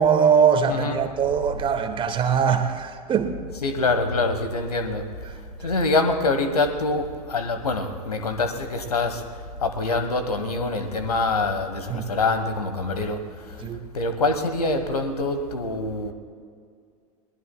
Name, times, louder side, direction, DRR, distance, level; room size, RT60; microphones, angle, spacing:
voice 1, 0.0-3.3 11.9-12.0 13.6-13.8, right 7 dB, 25° right, 1.3 m, -21 dB
voice 2, 0.7-1.0 3.6-13.6 13.9-16.1, left 3 dB, 75° left, 1.3 m, -25 dB
22.0 x 19.5 x 2.3 m
figure-of-eight pair, 80°, 20 cm